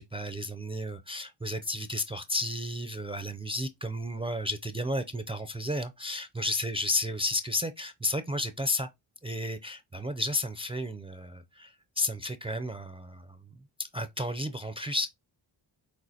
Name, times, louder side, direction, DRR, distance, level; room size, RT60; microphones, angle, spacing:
voice 1, 0.0-8.9 9.2-13.5 13.8-15.1, left 1 dB, 15° right, 0.4 m, -32 dB
6.2 x 2.4 x 2.8 m
cardioid pair, 65°, 47 cm